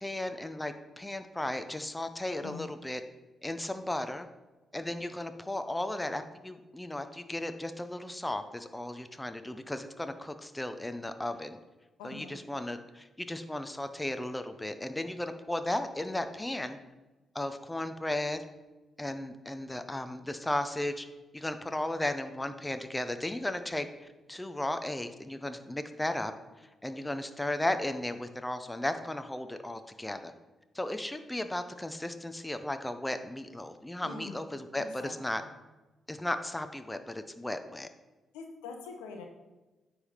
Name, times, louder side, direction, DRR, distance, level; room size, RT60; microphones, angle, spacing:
voice 1, 0.0-3.0 3.4-4.3 4.7-11.6 12.0-16.8 17.3-18.5 19.0-21.1 21.3-23.9 24.3-26.3 26.8-30.3 30.7-35.4 36.1-37.9, left 1 dB, 15° left, 9 dB, 0.8 m, -35 dB
voice 2, 12.0-12.4 34.0-34.4 34.8-35.4 38.3-39.2, left 4 dB, 85° left, 3 dB, 0.9 m, -44 dB
9.3 x 3.6 x 5.8 m, 1.1 s
hypercardioid pair, 45°, 0 cm